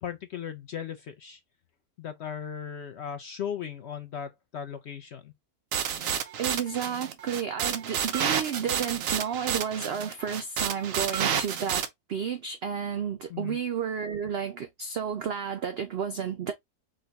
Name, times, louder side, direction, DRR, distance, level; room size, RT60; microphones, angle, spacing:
voice 1, 0.0-1.4 2.0-5.3 13.3-13.6, left 8 dB, 65° left, 0.6 m, -37 dB
sound 1, 5.7-11.9, right 8 dB, 65° right, 1.1 m, -30 dB
voice 2, 6.4-16.5, right 7 dB, 85° right, 0.5 m, -32 dB
5.1 x 2.2 x 3.9 m
omnidirectional pair, 1.6 m